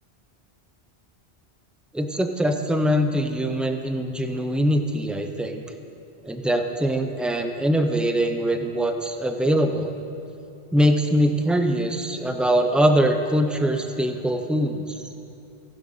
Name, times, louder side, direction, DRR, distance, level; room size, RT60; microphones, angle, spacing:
voice 1, 1.9-5.6 6.2-9.9 10.7-14.8, equal, ahead, 5 dB, 0.5 m, -22 dB
16.5 x 7.7 x 5.6 m, 2.8 s
omnidirectional pair, 1.1 m